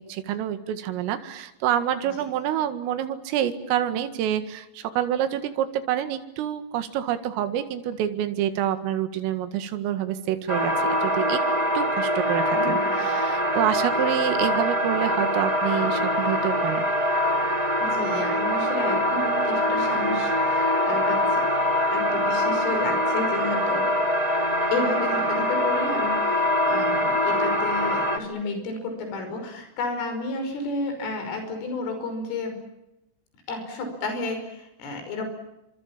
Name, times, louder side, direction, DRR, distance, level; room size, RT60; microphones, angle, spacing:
voice 1, 0.1-11.4 11.7-16.9, right 10 dB, 80° right, 9 dB, 4.5 m, -27 dB
sound 1, 10.5-28.2, equal, 10° right, 1.9 m, -23 dB
voice 2, 12.5-13.1 17.5-21.5 21.9-23.9 24.7-32.6 33.5-35.3, left 3 dB, 75° left, 6 dB, 8.1 m, -32 dB
29.5 x 25.5 x 7.3 m, 0.90 s
omnidirectional pair, 5.9 m